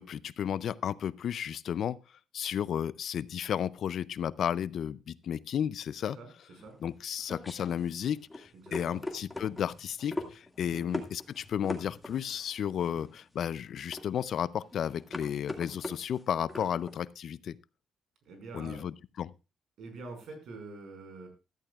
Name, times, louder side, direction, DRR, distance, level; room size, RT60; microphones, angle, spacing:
voice 1, 0.0-2.0 2.3-6.2 6.8-17.6 18.5-19.3, left 9 dB, 65° left, 0.5 m, -33 dB
voice 2, 6.0-6.7 8.5-9.0 10.7-10.8 18.2-18.8 19.8-21.3, right 3 dB, 70° right, 5.4 m, -46 dB
sound 1, 6.6-17.0, left 2 dB, 15° left, 2.0 m, -41 dB
15.0 x 13.0 x 2.4 m
cardioid pair, 90°, 0 cm